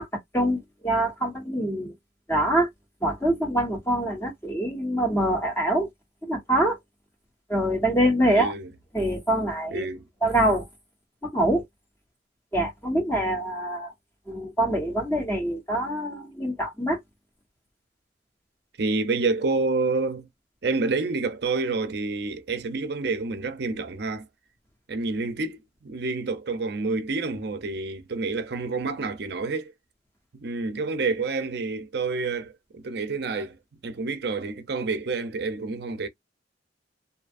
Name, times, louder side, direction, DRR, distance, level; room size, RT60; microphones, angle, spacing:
voice 1, 0.0-1.9 2.3-2.7 3.0-5.9 6.2-6.8 7.5-8.5 8.9-9.9 10.2-10.7 11.2-11.6 12.5-13.9 14.3-17.0, right 1 dB, 15° left, 1.2 m, -25 dB
voice 2, 8.3-8.7 9.7-10.1 18.8-20.3 20.6-24.2 24.9-29.7 30.3-33.6 33.8-36.1, right 3 dB, 60° right, 0.6 m, -28 dB
2.7 x 2.4 x 2.5 m
head